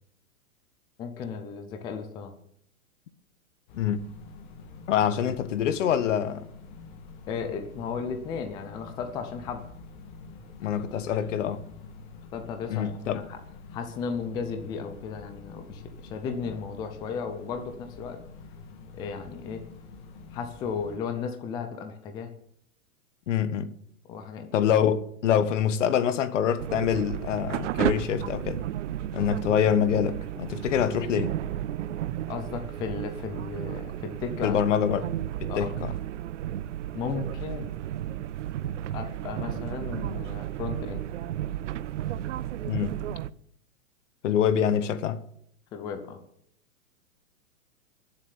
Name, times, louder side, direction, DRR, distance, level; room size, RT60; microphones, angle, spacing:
voice 1, 1.0-2.3 7.3-9.6 10.9-11.2 12.3-13.2 13.7-18.2 19.0-19.6 20.3-22.3 24.1-24.7 29.1-29.3 32.3-34.6 35.5-35.7 36.9-37.7 38.9-41.1 45.7-46.2, left 6 dB, 10° left, 0.6 m, -35 dB
sound 1, 3.7-21.0, left 4 dB, 35° left, 2.1 m, -46 dB
voice 2, 4.9-6.5 10.6-11.6 12.7-13.2 23.3-23.7 24.5-28.6 29.1-31.3 34.4-35.0 35.4-35.9 42.7-42.9 44.2-45.2, left 8 dB, 60° left, 1.4 m, -25 dB
sound 2, 26.6-43.3, right 12 dB, 55° right, 0.7 m, -33 dB
15.5 x 7.6 x 8.9 m
hypercardioid pair, 160°, 42 cm